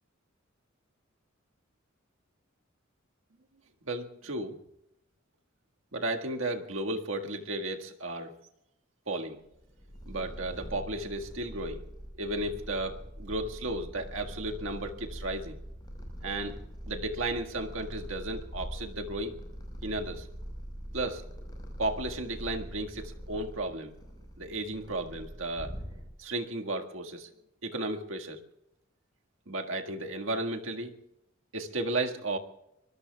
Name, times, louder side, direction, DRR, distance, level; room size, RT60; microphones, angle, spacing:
voice 1, 3.9-4.6 5.9-8.3 9.1-9.4 10.0-11.9 12.2-15.6 16.2-16.6 16.8-19.4 19.8-20.3 20.9-21.2 21.8-23.9 24.4-25.7 26.2-27.3 27.6-28.4 29.5-30.9 31.5-32.4, right 2 dB, 70° right, 4 dB, 1.7 m, -34 dB
Purr, 9.5-26.4, equal, 20° left, 4.8 m, -43 dB
24.5 x 21.0 x 2.3 m, 0.81 s
head